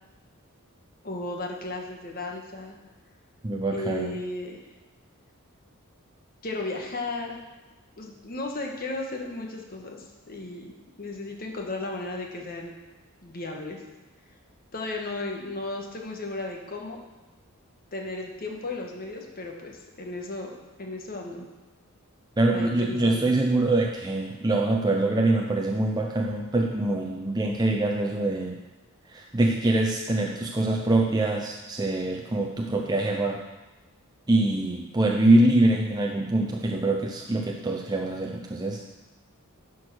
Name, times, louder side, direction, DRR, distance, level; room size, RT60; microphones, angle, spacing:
voice 1, 1.0-2.8 3.7-4.6 6.4-7.4 8.0-10.7 11.0-12.7 13.2-13.8 14.7-17.0 17.9-20.5 20.8-21.5 22.5-23.4, left 2 dB, 40° left, 1 dB, 1.3 m, -35 dB
voice 2, 3.4-4.1 22.4-28.6 29.1-33.4 34.3-38.8, right 2 dB, 20° right, 0 dB, 0.5 m, -24 dB
10.5 x 4.6 x 6.1 m, 1.2 s
head